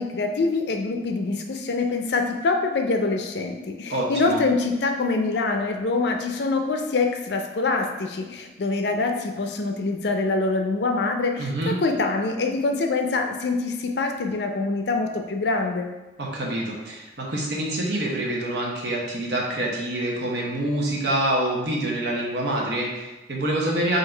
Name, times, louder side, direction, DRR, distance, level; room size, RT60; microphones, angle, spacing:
voice 1, 0.0-15.9, left 3 dB, 70° left, 4 dB, 0.5 m, -25 dB
voice 2, 3.9-4.4 11.4-11.7 16.2-24.0, right 1 dB, 75° right, -3 dB, 1.0 m, -26 dB
3.8 x 2.7 x 4.4 m, 1.1 s
head